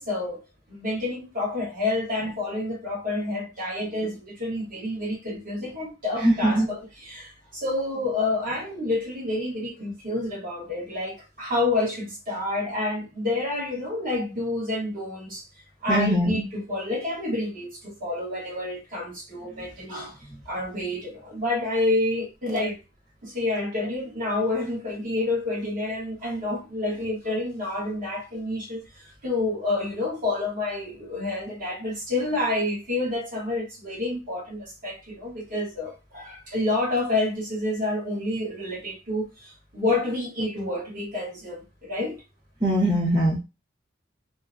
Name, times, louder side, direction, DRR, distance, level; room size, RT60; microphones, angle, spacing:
voice 1, 0.0-15.5 15.8-20.2 20.4-22.8 23.2-42.2, left 2 dB, 45° right, 1.2 m, -29 dB
voice 2, 6.2-6.7 15.9-16.4 42.6-43.4, right 1 dB, 20° right, 1.0 m, -21 dB
2.9 x 2.1 x 2.5 m
head